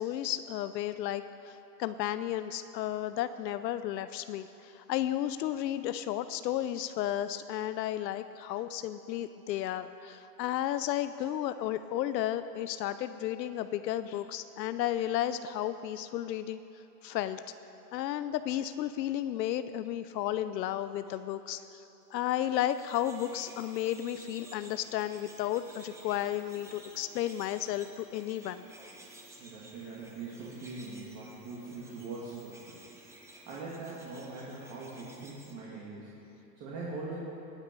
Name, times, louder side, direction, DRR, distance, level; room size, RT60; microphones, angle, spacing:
voice 1, 0.0-16.6 17.0-17.4 17.9-21.8 22.1-28.6, left 12 dB, 80° left, 12 dB, 0.7 m, -33 dB
sound 1, 22.3-35.5, right 2 dB, 5° right, 0.9 m, -54 dB
voice 2, 29.4-36.2 36.6-37.2, right 3 dB, 30° right, -7 dB, 2.3 m, -42 dB
19.0 x 9.0 x 5.4 m, 2.9 s
supercardioid pair, 150°, 50 cm